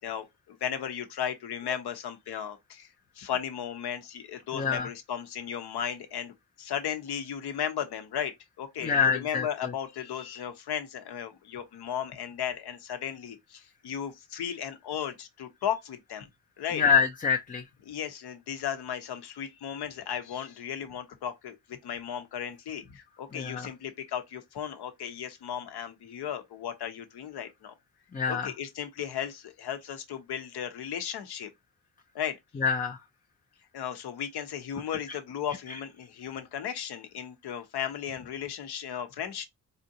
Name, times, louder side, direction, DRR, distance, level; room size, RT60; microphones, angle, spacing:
voice 1, 0.0-2.9 3.2-16.3 16.6-16.8 17.9-27.7 28.3-31.5 32.1-32.4 33.7-39.4, left 9 dB, 65° left, 0.9 m, -35 dB
voice 2, 4.5-4.9 8.8-9.7 16.7-17.6 23.3-23.7 28.1-28.5 32.6-33.0 35.7-35.8, left 6 dB, 20° left, 0.5 m, -26 dB
4.2 x 2.6 x 2.8 m
supercardioid pair, 50°, 41 cm